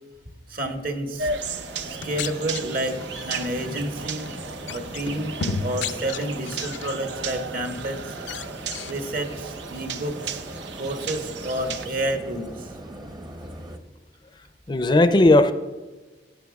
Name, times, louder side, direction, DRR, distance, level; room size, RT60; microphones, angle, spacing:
voice 1, 0.5-1.3 1.8-4.3 4.7-8.2 8.9-10.4 10.8-12.7, right 1 dB, 55° right, 1.2 m, -30 dB
sound 1, 1.1-13.8, equal, 25° right, 0.7 m, -40 dB
sound 2, 1.2-11.9, right 4 dB, 85° right, 0.7 m, -35 dB
sound 3, 1.9-3.5 4.1-4.3 4.7-7.0 7.4-7.8 8.2-9.0, left 5 dB, 85° left, 0.5 m, -34 dB
voice 2, 14.7-15.5, left 2 dB, 25° left, 0.4 m, -17 dB
16.5 x 8.9 x 2.3 m
head